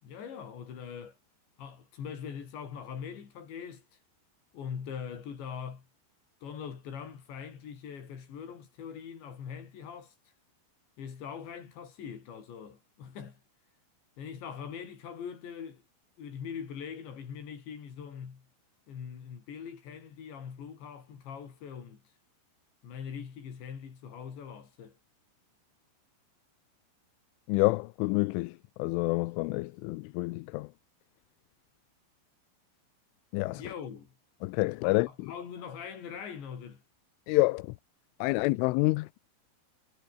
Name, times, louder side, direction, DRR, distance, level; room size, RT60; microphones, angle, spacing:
voice 1, 0.0-1.2 1.6-3.9 4.5-5.9 6.4-10.1 11.0-13.4 14.2-15.8 16.2-18.5 18.9-22.0 22.8-25.0 33.5-34.1 34.8-36.8, left 7 dB, 65° left, 6.5 m, -42 dB
voice 2, 27.5-30.7 33.3-33.7 34.4-35.3 37.3-37.7 38.2-39.1, left 22 dB, 85° left, 3.2 m, -28 dB
omnidirectional pair, 5.5 m